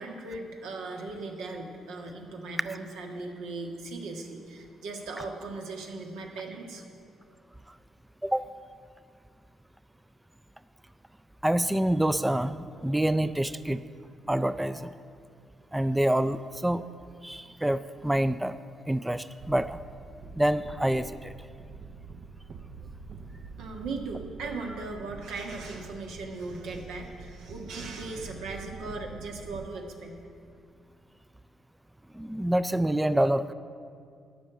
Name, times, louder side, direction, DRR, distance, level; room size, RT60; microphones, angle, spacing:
voice 1, 0.0-6.8 23.6-30.2, right 3 dB, 90° right, 2 dB, 1.5 m, -38 dB
voice 2, 11.4-13.8 14.3-14.9 15.7-16.8 17.2-18.6 18.9-19.8 20.4-21.3 32.1-33.5, right 1 dB, 10° right, 14 dB, 0.3 m, -27 dB
sound 1, 19.4-29.7, right 4 dB, 60° right, 0.7 m, -46 dB
13.0 x 5.4 x 9.0 m, 2.3 s
cardioid pair, 90°, 0 cm